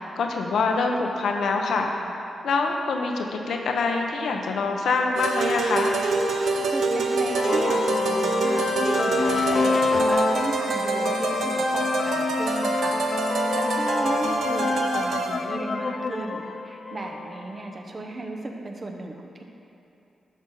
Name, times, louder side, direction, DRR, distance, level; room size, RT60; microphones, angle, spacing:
voice 1, 0.2-1.9 2.4-6.0, left 4 dB, 80° left, 2 dB, 0.8 m, -25 dB
sound 1, 5.2-15.5, right 4 dB, 80° right, 0.5 m, -26 dB
sound 2, 5.9-17.6, left 4 dB, 55° left, 0.4 m, -27 dB
voice 2, 6.7-13.0 13.5-19.4, right 2 dB, 40° right, 2 dB, 1.0 m, -34 dB
11.0 x 6.2 x 3.9 m, 2.8 s
cardioid pair, 65°, 0 cm